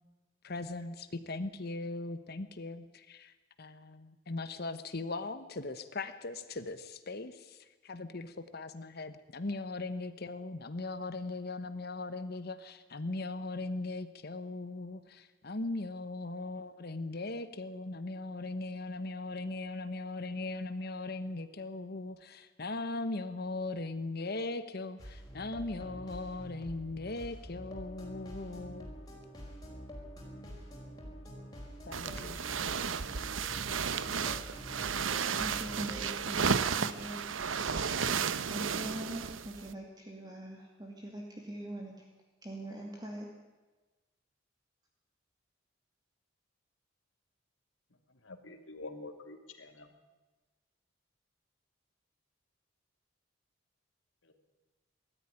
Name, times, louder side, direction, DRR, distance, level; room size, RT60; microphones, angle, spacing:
voice 1, 0.4-3.3 3.6-28.9 31.9-32.4, left 2 dB, 55° left, 11 dB, 1.1 m, -39 dB
sound 1, 25.0-36.1, equal, 20° left, 5.1 m, -47 dB
sound 2, 31.9-39.7, right 6 dB, 90° right, 0.9 m, -33 dB
voice 2, 35.4-37.3 38.5-42.0 42.4-43.3, right 1 dB, 20° right, 0 dB, 2.5 m, -43 dB
voice 3, 48.2-49.9 54.2-54.3, left 2 dB, 90° left, 5 dB, 2.7 m, -47 dB
20.5 x 13.5 x 10.0 m, 1.2 s
head